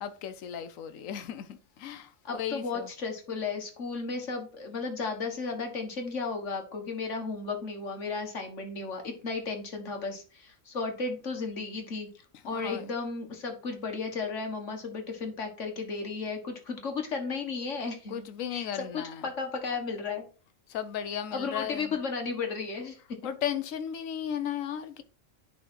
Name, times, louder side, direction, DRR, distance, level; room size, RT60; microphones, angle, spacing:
voice 1, 0.0-2.9 12.5-12.8 18.1-19.2 20.7-21.9 23.2-25.0, left 9 dB, 90° left, 1.1 m, -35 dB
voice 2, 2.2-12.1 12.4-18.2 18.5-20.3 21.3-23.3, left 4 dB, 65° left, 1.9 m, -34 dB
10.0 x 3.9 x 4.4 m
omnidirectional pair, 1.4 m